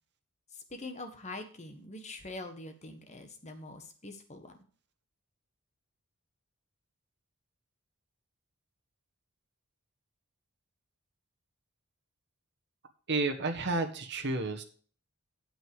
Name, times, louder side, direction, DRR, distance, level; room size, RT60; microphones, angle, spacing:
voice 1, 0.5-4.5, left 2 dB, 30° left, 6 dB, 1.5 m, -44 dB
voice 2, 13.1-14.6, right 3 dB, 50° right, 4 dB, 1.4 m, -31 dB
9.1 x 7.9 x 4.8 m, 0.43 s
head